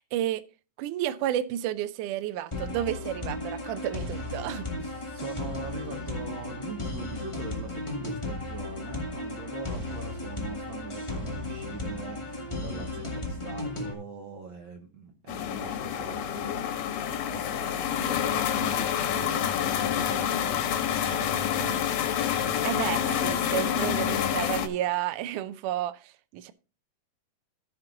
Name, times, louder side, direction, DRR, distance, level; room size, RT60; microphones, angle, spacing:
voice 1, 0.1-0.4 0.8-4.7 22.3-26.5, right 12 dB, 80° right, 2.0 m, -31 dB
sound 1, 2.5-13.9, left 2 dB, 20° left, 0.8 m, -35 dB
voice 2, 4.8-21.8, right 4 dB, 50° right, 1.6 m, -42 dB
sound 2, 15.3-24.7, left 9 dB, 85° left, 2.7 m, -28 dB
14.5 x 5.9 x 3.8 m
omnidirectional pair, 3.8 m